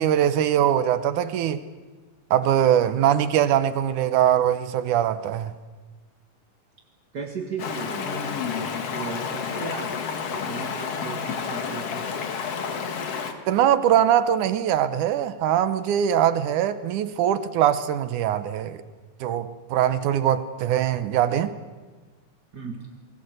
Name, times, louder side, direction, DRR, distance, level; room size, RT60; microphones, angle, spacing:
voice 1, 0.0-1.6 2.3-5.5 13.5-18.8 19.2-21.5, right 10 dB, 75° right, 2.4 m, -22 dB
voice 2, 7.1-8.2 8.8-10.0 10.2-12.1 22.5-22.9, right 5 dB, 40° right, 1.6 m, -36 dB
Stream, 7.6-13.3, left 6 dB, 55° left, 2.5 m, -30 dB
29.0 x 20.5 x 8.0 m
omnidirectional pair, 3.7 m